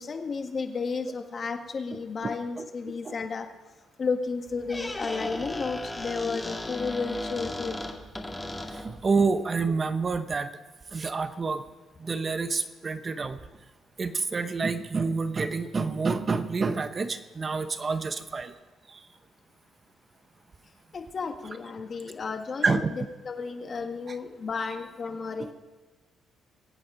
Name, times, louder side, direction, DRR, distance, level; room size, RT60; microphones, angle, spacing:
voice 1, 0.0-3.5 4.0-7.7 20.9-25.5, left 4 dB, 45° left, 5 dB, 1.6 m, -33 dB
voice 2, 1.9-2.3 2.6-2.7 3.0-3.2 8.7-10.5 10.9-11.6 12.0-13.4 14.0-18.5 18.9-19.1 22.6-22.9 24.1-24.2 25.4-25.5, right 4 dB, 35° right, 10 dB, 1.0 m, -28 dB
Squeak, 4.5-9.1, left 1 dB, 10° left, 1.9 m, -36 dB
22.0 x 8.6 x 4.9 m, 1.2 s
cardioid pair, 90°, 0 cm